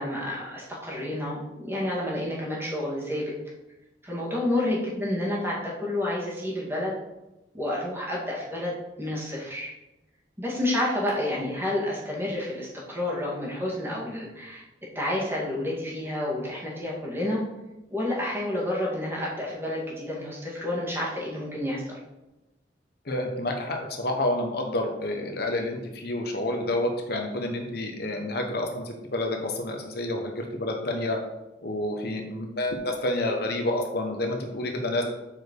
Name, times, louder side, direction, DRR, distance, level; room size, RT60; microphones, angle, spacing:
voice 1, 0.0-3.3 4.0-6.9 7.5-9.7 10.4-14.6 14.9-17.4 17.9-22.0, left 1 dB, 15° right, -5 dB, 2.2 m, -29 dB
voice 2, 23.0-31.2 31.6-35.0, left 1 dB, 60° left, 3 dB, 1.1 m, -29 dB
7.3 x 4.9 x 4.7 m, 1.0 s
head